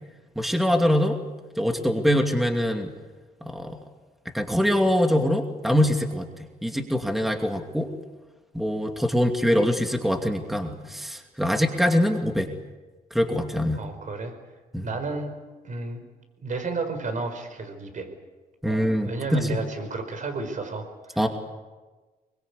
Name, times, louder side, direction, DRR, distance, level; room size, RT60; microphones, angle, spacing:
voice 1, 0.4-1.2 1.6-2.9 3.4-3.8 4.3-7.9 8.5-12.5 13.1-13.8 14.7-14.9 18.6-19.5 21.2-21.3, equal, ahead, 4 dB, 2.6 m, -23 dB
voice 2, 13.7-14.3 14.8-15.3 15.6-16.0 16.4-18.1 18.6-20.8 21.1-21.3, right 3 dB, 55° right, 7 dB, 5.0 m, -32 dB
23.5 x 22.0 x 8.4 m, 1.3 s
cardioid pair, 85°, 16 cm